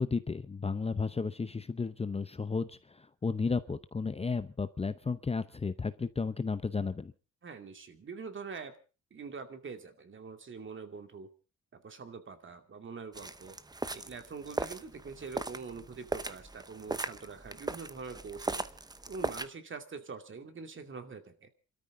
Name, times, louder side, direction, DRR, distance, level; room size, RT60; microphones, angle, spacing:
voice 1, 0.0-7.1, left 4 dB, 20° left, 12 dB, 0.8 m, -33 dB
voice 2, 7.4-8.8 9.1-11.3 11.7-13.6 13.9-18.7 19.1-21.5, right 5 dB, 40° right, 7 dB, 2.4 m, -44 dB
sound 1, 13.1-19.5, right 2 dB, 15° right, 0.9 m, -38 dB
28.0 x 13.5 x 3.7 m, 0.33 s
cardioid pair, 90°, 30 cm